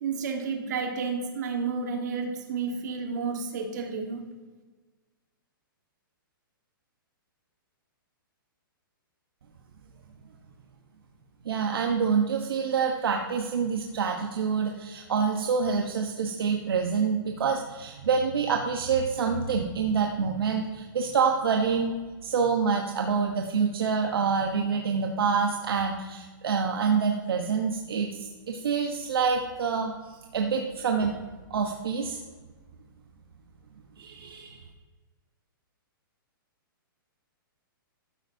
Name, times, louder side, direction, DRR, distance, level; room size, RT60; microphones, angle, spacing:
voice 1, 0.0-4.2, right 5 dB, 50° right, 3 dB, 1.6 m, -31 dB
voice 2, 11.4-21.9 22.2-31.1 31.5-32.2 34.0-34.6, right 5 dB, 85° right, 2 dB, 1.0 m, -27 dB
13.0 x 9.3 x 2.7 m, 1.3 s
hypercardioid pair, 165°, 12 cm